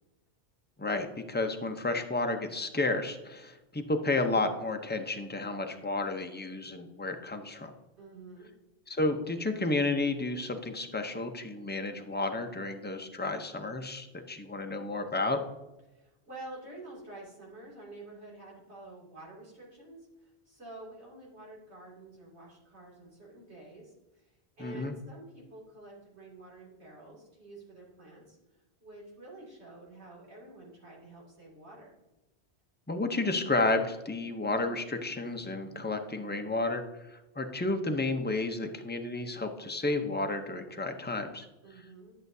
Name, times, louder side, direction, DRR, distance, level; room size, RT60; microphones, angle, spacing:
voice 1, 0.8-7.7 8.9-15.4 24.6-24.9 32.9-36.8 37.1-41.4, left 2 dB, 15° left, 5 dB, 0.5 m, -31 dB
voice 2, 8.0-8.5 15.9-28.4 28.8-32.0 41.6-42.1, right 2 dB, 85° right, -5 dB, 3.0 m, -49 dB
11.0 x 6.3 x 2.7 m, 1.0 s
omnidirectional pair, 1.1 m